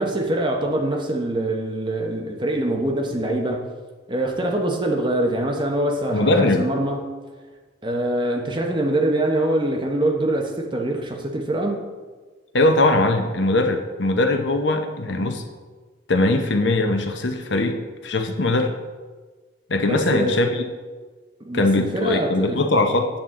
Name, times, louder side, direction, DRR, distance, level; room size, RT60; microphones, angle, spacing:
voice 1, 0.0-3.7 4.1-7.0 7.8-11.8 19.9-20.4 21.4-22.6, right 1 dB, 25° right, 1 dB, 0.9 m, -24 dB
voice 2, 6.1-6.7 12.5-15.4 16.1-17.8 18.0-18.7 19.7-20.7 21.5-23.1, left 2 dB, 75° left, 5 dB, 0.8 m, -20 dB
8.7 x 7.4 x 3.7 m, 1.4 s
head